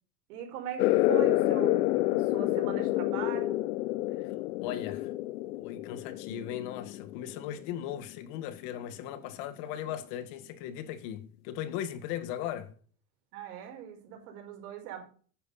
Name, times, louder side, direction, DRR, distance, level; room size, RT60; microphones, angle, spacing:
voice 1, 0.3-3.7 13.3-15.0, right 10 dB, 80° right, 5.0 m, -40 dB
sound 1, 0.8-7.9, left 17 dB, 80° left, 0.7 m, -29 dB
voice 2, 4.6-5.1 5.6-12.7, left 10 dB, 60° left, 1.8 m, -38 dB
10.5 x 9.9 x 4.2 m
supercardioid pair, 150°, 44 cm